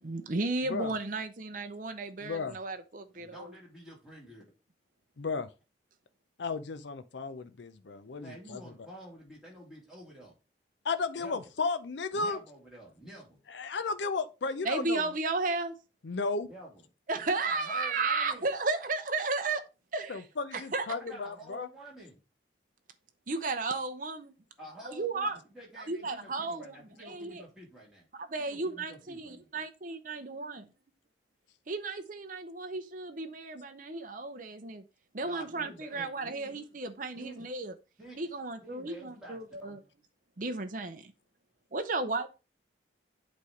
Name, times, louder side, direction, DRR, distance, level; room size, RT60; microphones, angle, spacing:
voice 1, 0.0-3.5 14.6-15.8 17.1-19.6 19.9-20.2 20.5-20.9 23.3-24.3 24.8-25.4 25.9-26.8 27.0-27.4 28.2-30.6 31.7-34.8 35.1-37.7 38.2-39.8 40.4-41.1 41.7-42.3, right 3 dB, 45° right, 0.7 m, -34 dB
voice 2, 2.2-2.6 5.2-5.5 6.4-8.6 10.8-12.4 13.5-15.1 16.0-16.5 20.1-21.7, left 4 dB, 65° left, 0.5 m, -34 dB
voice 3, 3.1-4.4 8.2-10.3 11.2-11.4 12.1-13.4 16.5-16.8 17.2-18.5 21.0-22.2 24.6-28.1 28.5-29.4 35.2-36.5 37.1-37.4 38.0-38.2 38.6-39.4 39.7-39.8, right 1 dB, 5° right, 2.5 m, -49 dB
8.3 x 3.2 x 4.9 m
head